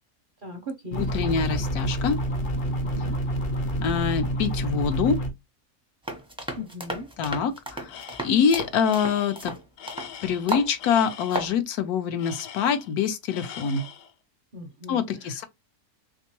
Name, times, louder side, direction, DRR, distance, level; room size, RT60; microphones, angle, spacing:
voice 1, 0.4-1.0 2.8-3.2 6.6-7.1 14.5-15.0 15.2-15.4, left 1 dB, 55° right, 0.6 m, -38 dB
sound 1, 0.9-5.3, right 1 dB, 45° left, 0.7 m, -28 dB
voice 2, 1.0-2.2 3.8-5.2 7.2-9.5 10.2-13.8 14.9-15.4, left 6 dB, 75° left, 1.0 m, -25 dB
sound 2, 6.0-10.1 10.5-10.7 11.1-11.5, right 1 dB, 10° right, 0.3 m, -33 dB
Tools, 7.9-8.5 8.8-11.5 12.2-13.0 13.3-14.1, left 8 dB, 90° left, 1.3 m, -42 dB
3.4 x 3.0 x 2.9 m
omnidirectional pair, 1.7 m